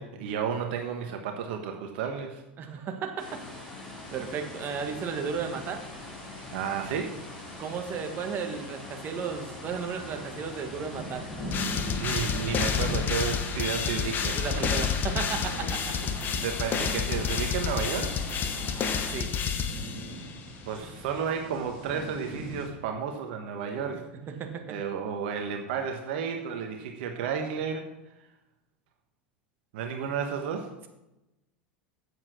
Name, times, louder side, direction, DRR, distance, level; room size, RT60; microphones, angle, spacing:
voice 1, 0.0-2.4 2.7-2.9 6.5-7.1 12.0-14.4 16.0-18.2 20.6-24.0 24.7-27.8 29.7-30.7, right 7 dB, 65° right, 4 dB, 1.3 m, -32 dB
voice 2, 2.6-3.4 4.1-5.8 7.6-11.3 14.4-15.9 19.1-19.3 24.3-24.6, right 6 dB, 40° right, 5 dB, 1.6 m, -34 dB
sound 1, 3.2-19.2, left 2 dB, 10° left, 4.5 m, -43 dB
sound 2, 4.0-22.7, equal, 55° left, 3.7 m, -42 dB
sound 3, 11.5-20.3, left 6 dB, 35° left, 1.1 m, -30 dB
8.2 x 7.6 x 6.2 m, 0.95 s
hypercardioid pair, 95°, 6 cm